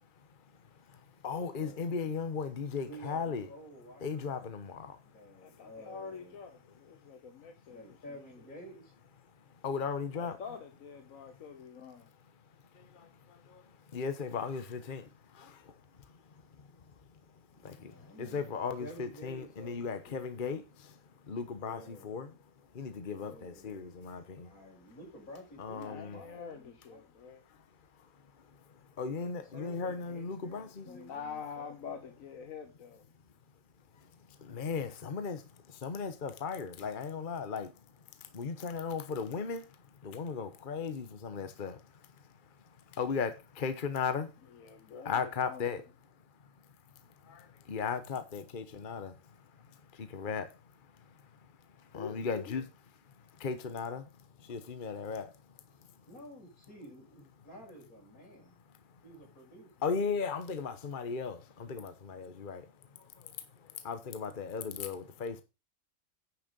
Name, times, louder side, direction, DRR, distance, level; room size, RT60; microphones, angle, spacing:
voice 1, 0.5-3.5 4.0-5.0 9.6-10.4 12.7-16.9 17.6-22.3 22.7-24.5 25.6-26.2 27.5-27.6 28.0-28.1 28.4-30.9 34.0-37.7 38.2-42.1 42.9-44.5 45.0-45.8 47.2-51.5 51.8-52.6 53.1-54.1 54.4-55.6 59.8-62.7 63.0-65.4, left 5 dB, 40° left, 1.1 m, -37 dB
voice 2, 1.5-2.1 2.8-4.6 5.1-6.4 7.7-8.9 17.5-18.4 18.8-20.4 21.6-22.2 23.2-23.9 24.4-27.0 29.2-32.1 56.1-58.6 59.0-59.7, equal, 90° left, 6.0 m, -51 dB
voice 3, 5.4-8.0 10.1-12.1 25.8-27.4 30.8-33.0 44.5-45.7 51.9-52.6, left 6 dB, 70° left, 1.4 m, -46 dB
9.9 x 6.5 x 5.2 m
omnidirectional pair, 1.5 m